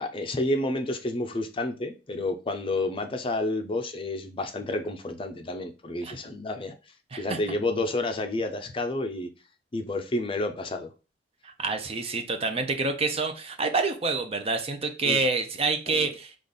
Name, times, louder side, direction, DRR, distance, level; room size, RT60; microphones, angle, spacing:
voice 1, 0.0-6.7 7.2-9.3 9.7-10.9 15.0-15.2 15.9-16.1, left 2 dB, 30° left, 0.5 m, -30 dB
voice 2, 11.4-16.4, right 3 dB, 35° right, 0.6 m, -27 dB
5.0 x 2.5 x 3.9 m
head